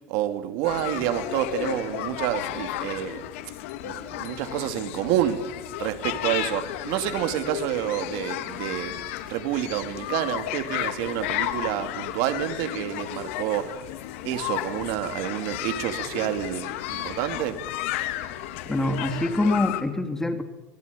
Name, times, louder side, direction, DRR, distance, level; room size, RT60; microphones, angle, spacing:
voice 1, 0.1-3.3 3.8-5.4 5.8-8.9 9.3-13.7 14.2-17.6, right 12 dB, 65° right, 9 dB, 2.8 m, -28 dB
sound 1, 0.6-19.8, left 13 dB, 80° left, 2.5 m, -33 dB
voice 2, 18.6-20.4, left 2 dB, 5° left, 7 dB, 3.0 m, -25 dB
26.0 x 19.0 x 10.0 m, 0.97 s
supercardioid pair, 145°, 7 cm